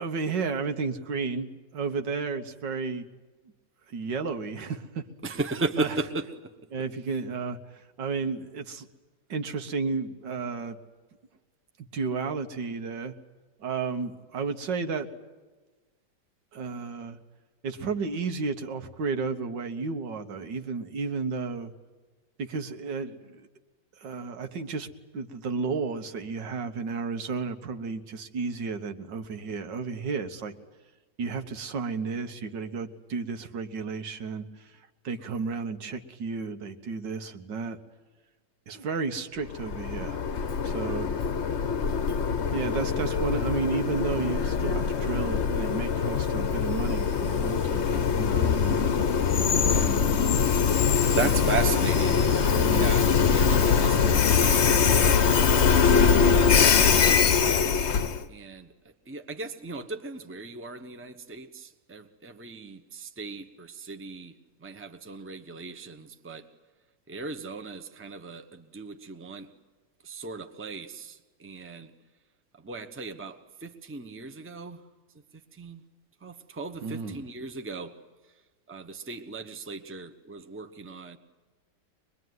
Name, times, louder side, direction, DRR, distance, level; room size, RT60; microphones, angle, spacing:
voice 1, 0.0-3.1 3.9-5.4 5.8-6.0 6.7-7.6 8.0-8.9 9.3-10.8 11.9-13.1 13.6-15.1 16.5-17.2 17.6-21.7 22.4-23.4 24.0-24.9 25.1-30.5 31.2-34.5 35.0-37.8 38.7-40.2 40.6-41.1 42.5-49.1 49.7-50.1 51.1-51.4 52.5-52.8 76.8-77.2, right 4 dB, 85° right, 7 dB, 2.0 m, -32 dB
voice 2, 5.2-6.5 51.1-53.0 53.3-54.8 55.9-57.9 58.3-58.7 59.1-64.3 64.6-66.4 67.1-69.5 70.0-71.9 72.6-74.8 75.6-75.8 76.2-77.9 78.7-81.2, right 3 dB, 10° right, 7 dB, 0.9 m, -36 dB
Train, 39.5-58.2, left 6 dB, 45° left, 1.0 m, -23 dB
24.0 x 21.5 x 9.5 m, 1.3 s
omnidirectional pair, 1.9 m